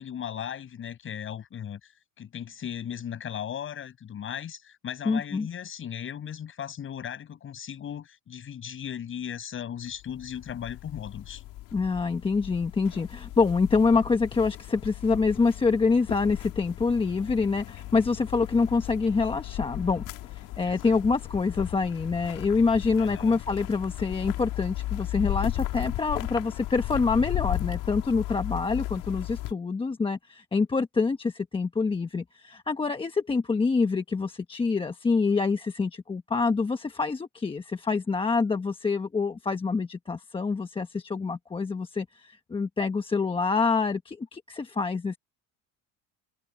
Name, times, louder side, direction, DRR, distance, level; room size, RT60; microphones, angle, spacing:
voice 1, 0.0-1.9 2.2-11.4 20.7-20.9 23.0-23.4, left 9 dB, 35° left, 7.2 m, -37 dB
voice 2, 5.0-5.5 11.7-20.0 20.3-45.2, left 4 dB, 15° left, 1.1 m, -26 dB
sound 1, 9.9-29.5, left 16 dB, 60° left, 2.8 m, -36 dB
cardioid pair, 155°, 36 cm